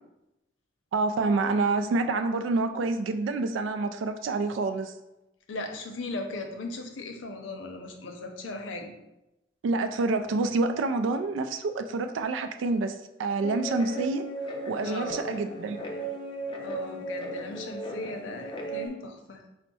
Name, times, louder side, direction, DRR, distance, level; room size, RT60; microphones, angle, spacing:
voice 1, 0.9-4.9 9.6-14.2 14.7-15.8, right 3 dB, 85° right, 8 dB, 0.3 m, -27 dB
voice 2, 5.5-8.9 14.8-15.3 16.6-19.4, left 2 dB, 85° left, 3 dB, 0.6 m, -38 dB
Guitar, 13.4-18.9, right 2 dB, 25° left, 0.5 m, -36 dB
4.4 x 2.1 x 4.0 m, 0.93 s
head